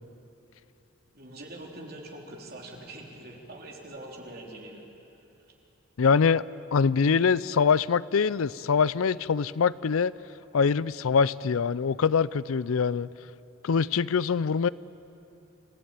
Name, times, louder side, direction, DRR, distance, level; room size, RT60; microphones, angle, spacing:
voice 1, 1.1-4.9, right 1 dB, 45° right, -1 dB, 3.6 m, -43 dB
voice 2, 6.0-6.4 6.7-10.1 10.5-13.1 13.6-14.7, left 5 dB, 85° left, 19 dB, 0.5 m, -24 dB
29.0 x 15.5 x 9.0 m, 2.9 s
head